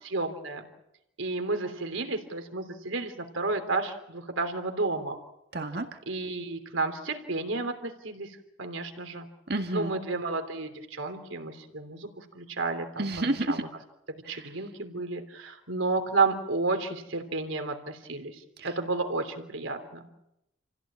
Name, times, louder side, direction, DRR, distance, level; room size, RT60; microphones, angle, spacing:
voice 1, 0.1-0.6 1.2-5.2 6.1-9.3 9.7-13.7 14.3-18.4 18.6-20.1, right 3 dB, 80° right, 6 dB, 3.2 m, -31 dB
voice 2, 5.5-5.9 9.5-9.9 13.0-13.6 14.3-14.4 18.6-18.7, right 2 dB, 50° right, 5 dB, 1.8 m, -30 dB
28.5 x 16.0 x 8.8 m, 0.86 s
head